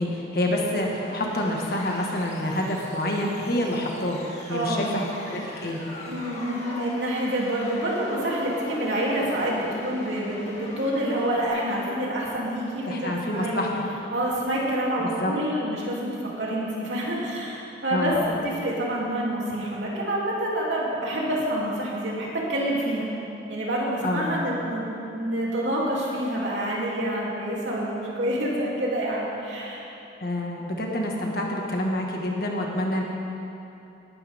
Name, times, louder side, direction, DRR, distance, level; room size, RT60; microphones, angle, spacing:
voice 1, 0.0-4.2 4.5-5.8 12.8-13.7 15.0-15.3 17.9-18.2 24.0-24.3 30.2-33.0, left 1 dB, 55° left, -1 dB, 1.7 m, -27 dB
sound 1, 0.8-11.5, left 1 dB, 35° left, 2.0 m, -41 dB
voice 2, 4.5-4.9 6.1-13.7 14.1-23.1 23.5-24.9 25.1-29.9, right 1 dB, 75° right, -5 dB, 3.0 m, -27 dB
18.0 x 11.5 x 3.6 m, 2.9 s
head